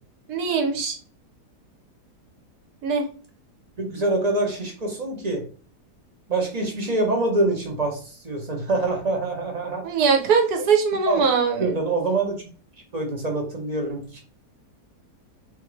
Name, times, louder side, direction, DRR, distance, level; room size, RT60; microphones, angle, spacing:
voice 1, 0.3-1.0 2.8-3.1 9.8-11.7, right 5 dB, 70° right, 5 dB, 1.3 m, -21 dB
voice 2, 3.8-5.4 6.3-9.9 11.1-11.3 11.6-12.4 12.9-14.2, right 2 dB, 40° right, 2 dB, 0.6 m, -25 dB
3.6 x 3.4 x 3.1 m, 0.39 s
omnidirectional pair, 1.8 m